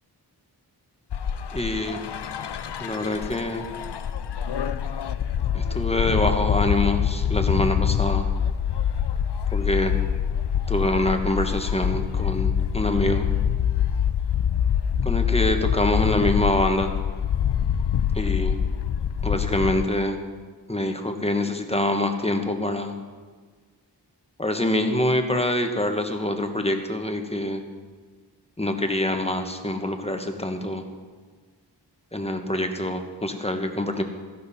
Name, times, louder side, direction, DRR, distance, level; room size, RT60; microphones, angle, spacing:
sound 1, 1.1-19.8, left 8 dB, 70° left, 0.5 m, -25 dB
voice 1, 1.5-2.0 2.8-3.7 5.5-8.3 9.5-9.9 10.7-13.2 15.0-16.9 18.1-18.6 19.2-20.2 20.7-23.0 24.4-27.6 28.6-30.8 32.1-34.0, left 1 dB, 15° left, 5 dB, 1.3 m, -25 dB
14.0 x 11.5 x 4.2 m, 1.5 s
wide cardioid pair, 40°, 43 cm